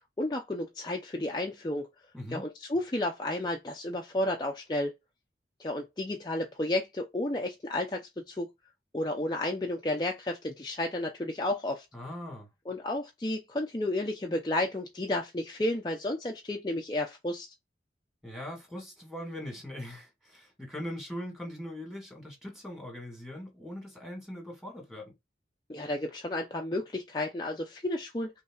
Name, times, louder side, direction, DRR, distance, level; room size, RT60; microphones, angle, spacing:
voice 1, 0.2-1.9 2.3-4.9 5.6-8.0 8.3-8.5 8.9-11.8 12.7-17.5 25.7-28.3, left 1 dB, 25° left, 0.5 m, -32 dB
voice 2, 2.1-2.5 11.9-12.5 18.2-25.1, left 1 dB, ahead, 1.9 m, -41 dB
5.6 x 3.2 x 2.4 m
head